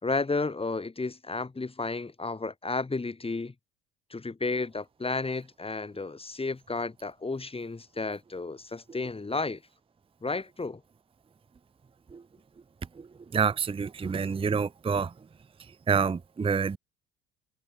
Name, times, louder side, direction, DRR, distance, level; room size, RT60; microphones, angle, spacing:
voice 1, 0.0-3.5 4.1-9.6 10.2-10.8, left 3 dB, 20° left, 3.3 m, -32 dB
voice 2, 13.3-15.1 15.9-16.8, right 6 dB, 20° right, 0.8 m, -27 dB
hypercardioid pair, 60°, 29 cm